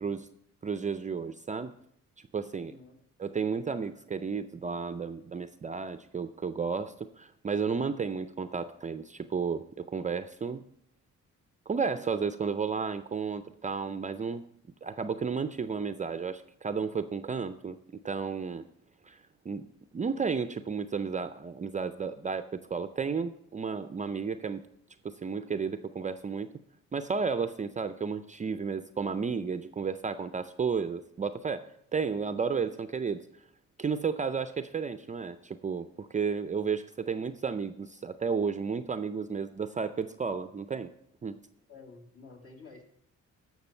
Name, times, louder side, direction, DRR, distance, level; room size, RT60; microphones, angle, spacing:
voice 1, 0.6-1.7 2.3-2.7 3.2-10.6 11.7-14.5 14.8-17.8 18.0-18.7 19.0-19.7 19.9-24.7 25.0-26.5 26.9-33.3 33.8-40.9 41.2-41.4, right 5 dB, 25° right, 10 dB, 0.4 m, -32 dB
voice 2, 2.5-3.0 41.7-42.8, left 4 dB, 50° left, 1 dB, 2.6 m, -51 dB
14.0 x 6.0 x 4.3 m, 0.72 s
cardioid pair, 90°, 30 cm